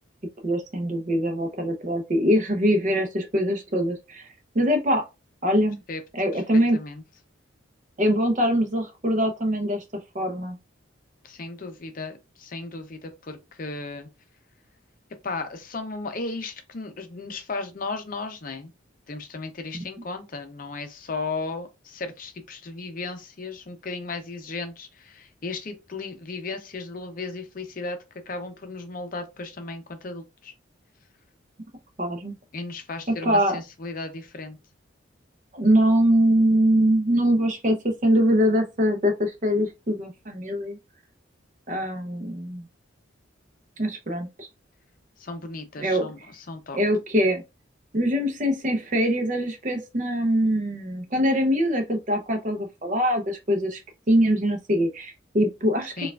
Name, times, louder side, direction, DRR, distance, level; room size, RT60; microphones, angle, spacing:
voice 1, 0.4-4.3 4.5-5.1 5.4-5.8 6.1-6.8 8.0-9.8 10.1-10.6 19.7-19.8 32.0-32.3 33.2-33.6 35.5-40.8 41.7-42.6 43.8-44.5 45.8-46.1 46.7-47.4 47.9-53.8 54.1-56.1, equal, 40° right, 0.6 m, -23 dB
voice 2, 6.7-7.0 11.2-14.1 15.2-18.7 19.1-28.0 28.3-30.5 32.5-34.6 45.2-46.8 56.0-56.1, left 3 dB, 45° left, 0.5 m, -35 dB
4.4 x 2.3 x 2.3 m
head